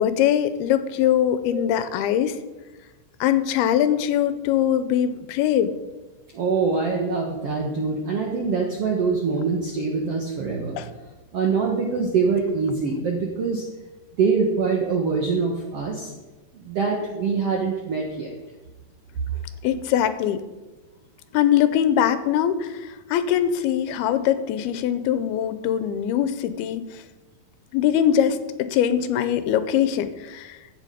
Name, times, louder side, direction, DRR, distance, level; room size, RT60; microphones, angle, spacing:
voice 1, 0.0-2.4 3.2-5.7 10.8-10.9 19.6-20.4 21.3-26.8 27.7-30.6, left 10 dB, 90° left, 11 dB, 2.6 m, -22 dB
voice 2, 6.3-10.8 11.3-13.6 14.2-16.1 16.5-18.3, right 5 dB, 75° right, 0 dB, 1.4 m, -24 dB
15.5 x 7.2 x 5.0 m, 1.2 s
omnidirectional pair, 4.5 m